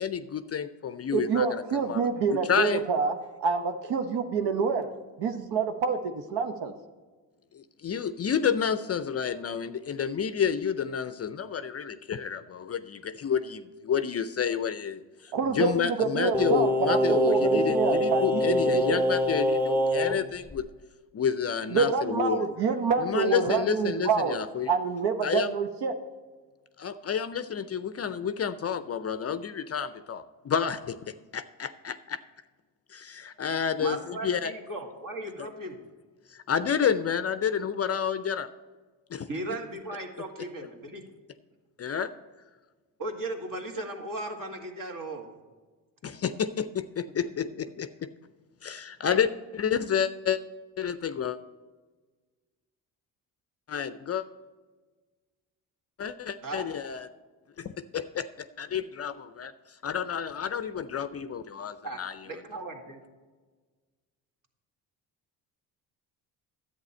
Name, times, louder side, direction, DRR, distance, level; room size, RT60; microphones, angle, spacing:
voice 1, 0.0-1.5 1.7-2.8 7.6-15.0 15.6-20.7 21.1-22.5 23.0-24.7 25.2-25.5 26.8-32.2 32.9-34.5 36.5-38.5 39.1-39.3 41.8-42.1 46.0-48.1 48.6-50.4 50.8-51.4 53.7-54.2 56.0-57.1 57.6-58.3 58.6-59.5 59.8-62.1, left 7 dB, 35° left, 13 dB, 0.5 m, -30 dB
voice 2, 1.1-3.1 3.4-4.9 5.2-6.7 15.3-19.0 21.7-24.4 24.7-25.9, right 5 dB, 65° right, 6 dB, 0.9 m, -27 dB
Singing, 16.3-20.2 20.5-20.6, equal, 5° right, 0.8 m, -25 dB
voice 3, 33.8-35.8 39.3-41.0 43.0-45.3 56.4-56.7 61.8-63.0, right 2 dB, 45° right, 3 dB, 2.0 m, -37 dB
10.5 x 8.4 x 4.3 m, 1.4 s
supercardioid pair, 60°, 44 cm